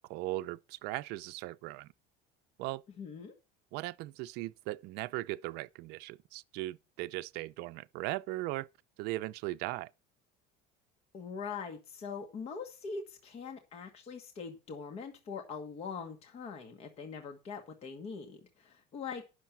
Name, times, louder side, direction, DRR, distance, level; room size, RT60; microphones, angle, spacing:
voice 1, 0.1-1.9 2.6-2.8 3.7-8.7 9.0-9.9, right 18 dB, 60° right, 0.5 m, -38 dB
voice 2, 3.0-3.3 11.1-19.2, left 5 dB, 35° left, 1.4 m, -42 dB
10.5 x 6.6 x 5.9 m
cardioid pair, 165°, 19 cm